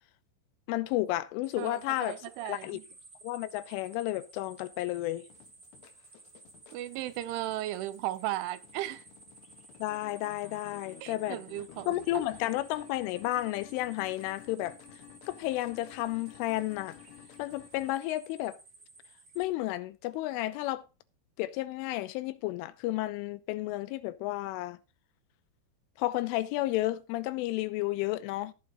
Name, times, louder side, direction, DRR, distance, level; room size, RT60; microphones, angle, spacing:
voice 1, 0.7-2.8 3.2-5.2 9.8-11.4 11.9-14.8 15.3-17.0 17.4-18.6 19.4-20.8 21.4-24.8 26.0-28.5, left 16 dB, 85° left, 3.3 m, -32 dB
sound 1, 1.4-19.4, right 3 dB, 20° right, 2.1 m, -56 dB
voice 2, 1.6-2.8 6.7-9.0 11.0-12.0, right 14 dB, 80° right, 3.2 m, -36 dB
sound 2, 5.3-17.9, left 11 dB, 70° left, 3.3 m, -54 dB
18.0 x 7.8 x 3.0 m
omnidirectional pair, 5.6 m